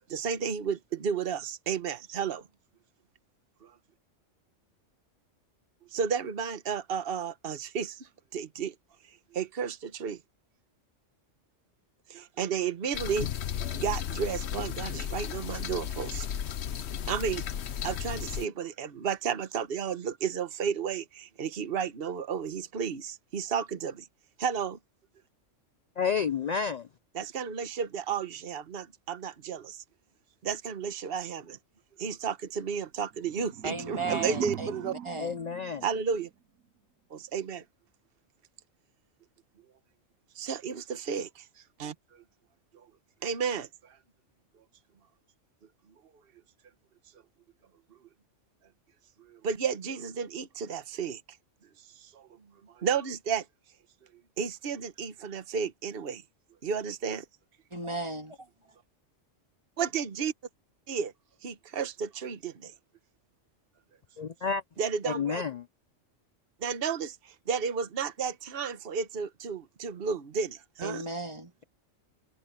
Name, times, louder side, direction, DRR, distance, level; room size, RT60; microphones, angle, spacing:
voice 1, 0.1-2.4 5.9-8.0 8.3-8.7 9.3-10.2 12.1-13.3 13.7-16.3 17.1-17.4 17.8-24.0 24.4-24.8 27.1-29.8 30.4-31.6 32.0-34.9 35.8-36.3 37.1-37.6 40.4-41.3 41.8-41.9 43.2-43.7 49.4-51.2 52.8-53.4 54.4-56.2 56.6-57.2 59.8-60.3 60.9-61.1 61.4-62.7 64.8-65.4 66.6-67.1 67.5-71.0, right 6 dB, 50° right, 1.3 m, -32 dB
sound 1, 12.9-18.5, left 9 dB, 60° left, 1.0 m, -34 dB
voice 2, 26.0-26.9 35.2-35.8 64.2-64.6 65.1-65.6, left 6 dB, 80° left, 0.3 m, -30 dB
sound 2, 33.1-36.3, right 9 dB, 85° right, 1.2 m, -40 dB
voice 3, 33.6-35.3 57.7-58.4 70.8-71.5, right 2 dB, 20° right, 2.4 m, -35 dB
omnidirectional pair, 1.3 m